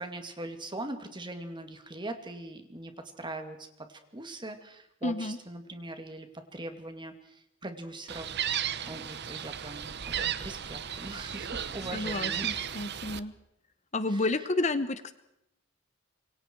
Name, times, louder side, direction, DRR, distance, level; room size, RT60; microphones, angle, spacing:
voice 1, 0.0-2.9 3.2-6.3 6.5-12.5 14.1-14.3, right 1 dB, 25° right, 7 dB, 2.5 m, -41 dB
voice 2, 5.0-5.4 11.9-13.3 13.9-15.1, left 2 dB, 35° left, 12 dB, 1.0 m, -30 dB
Gull seagull, 8.1-13.2, right 9 dB, 55° right, 1.0 m, -34 dB
27.0 x 23.5 x 4.7 m, 0.83 s
head